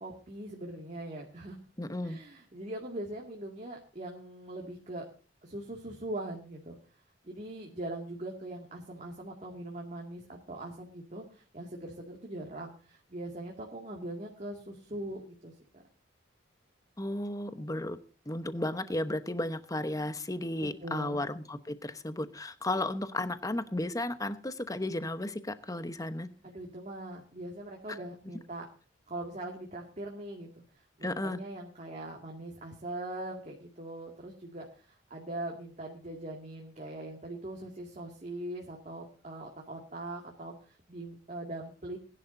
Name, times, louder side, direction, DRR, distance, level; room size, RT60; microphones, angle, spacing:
voice 1, 0.0-1.6 2.0-5.1 5.4-6.8 7.2-15.8 20.8-21.3 26.4-28.7 29.1-30.6 31.0-42.0, right 1 dB, 40° right, -1 dB, 2.2 m, -41 dB
voice 2, 1.8-2.2 17.0-18.0 18.3-26.3 27.9-28.0 31.0-31.4, left 1 dB, 20° left, 11 dB, 0.9 m, -34 dB
20.5 x 11.0 x 2.7 m, 0.38 s
head